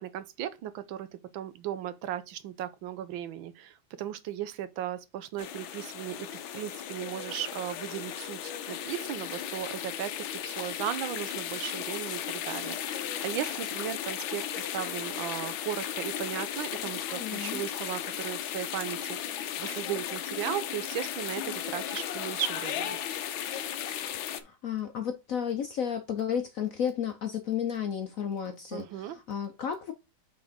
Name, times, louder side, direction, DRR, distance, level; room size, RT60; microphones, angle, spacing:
voice 1, 0.0-23.0 28.7-29.2, right 11 dB, 80° right, 1.4 m, -36 dB
sound 1, 5.4-24.4, left 10 dB, 90° left, 1.5 m, -35 dB
voice 2, 17.2-17.6 24.4-29.9, left 8 dB, 65° left, 0.9 m, -32 dB
6.0 x 3.6 x 4.9 m
omnidirectional pair, 2.1 m